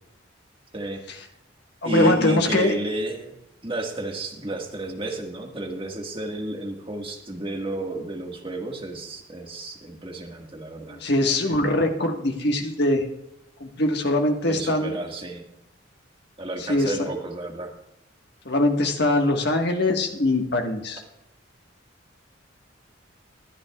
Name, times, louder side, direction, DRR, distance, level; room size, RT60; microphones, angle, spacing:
voice 1, 0.7-1.0 1.8-3.4 3.6-11.0 14.4-15.4 16.4-17.7, right 1 dB, 25° right, 1 dB, 1.6 m, -31 dB
voice 2, 1.8-2.8 11.0-13.0 13.6-14.9 16.7-16.9 18.4-21.0, left 1 dB, 55° left, 3 dB, 1.5 m, -22 dB
21.5 x 10.5 x 2.4 m, 0.84 s
head